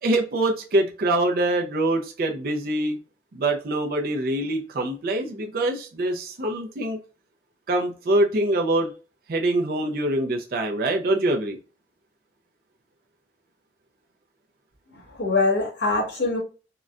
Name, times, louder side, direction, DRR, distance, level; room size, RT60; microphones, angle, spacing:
voice 1, 0.0-3.0 3.3-7.0 7.7-8.9 9.3-11.6, right 1 dB, 55° right, 2 dB, 0.5 m, -24 dB
voice 2, 14.9-16.4, left 3 dB, 80° left, -1 dB, 1.5 m, -24 dB
3.8 x 2.1 x 2.4 m, 0.34 s
head